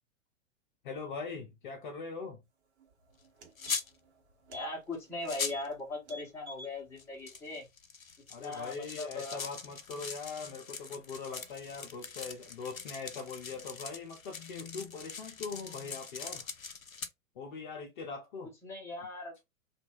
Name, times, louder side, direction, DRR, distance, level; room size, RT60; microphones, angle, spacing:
voice 1, 0.8-2.4 8.3-16.5 17.4-18.5, left 4 dB, 40° left, 0.6 m, -41 dB
sound 1, 2.8-2.9 3.2-4.1 4.5-4.7 5.0-5.1 5.4-5.7 6.0-6.7 7.1-7.2, equal, 55° right, 1.1 m, -48 dB
sound 2, 3.6-3.9 4.9-5.0 5.2-5.7 7.0-17.1, left 5 dB, 85° left, 0.6 m, -42 dB
voice 2, 4.5-7.7 8.4-9.4 18.6-19.3, left 2 dB, 5° left, 0.8 m, -39 dB
3.0 x 2.4 x 2.9 m
figure-of-eight pair, 110°, 40 cm